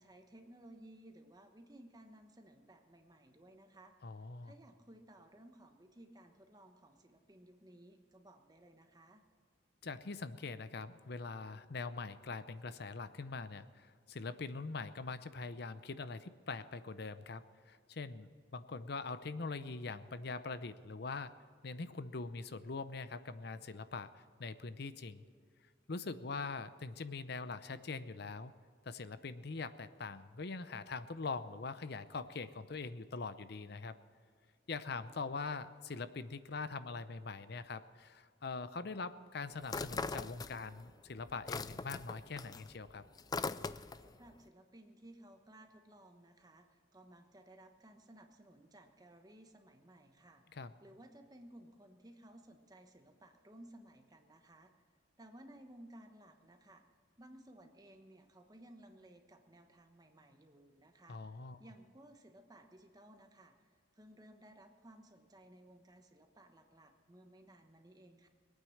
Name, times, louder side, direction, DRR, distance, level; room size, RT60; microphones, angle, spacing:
voice 1, 0.0-3.9 4.4-9.2 44.0-50.4 50.8-54.7 55.2-56.8 57.2-61.2 61.6-68.3, right 1 dB, 20° right, 5 dB, 1.1 m, -58 dB
voice 2, 4.0-4.5 9.8-21.3 21.6-25.2 25.9-28.5 28.8-33.9 34.7-43.0 50.5-50.7 61.1-61.6, left 4 dB, 60° left, 13 dB, 0.7 m, -43 dB
sound 1, 39.6-40.9 41.2-44.1, left 4 dB, 20° left, 0.3 m, -40 dB
20.5 x 9.2 x 6.5 m, 2.1 s
head